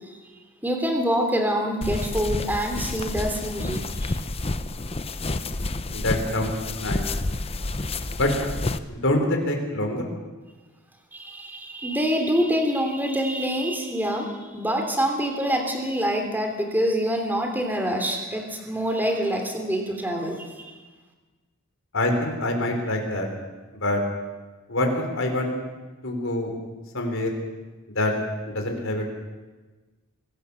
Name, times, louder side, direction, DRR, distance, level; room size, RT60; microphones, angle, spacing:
voice 1, 0.6-4.1 11.1-20.7, equal, 10° right, 4 dB, 3.2 m, -26 dB
sound 1, 1.8-8.8, left 2 dB, 25° left, 0.8 m, -29 dB
voice 2, 5.9-7.1 8.2-8.3 8.9-10.1 21.9-23.3 23.7-24.0 24.7-25.5 26.0-26.5 26.9-27.3 27.9-28.1 28.5-29.0, left 1 dB, 60° left, 3 dB, 4.2 m, -25 dB
24.0 x 16.5 x 7.1 m, 1.3 s
head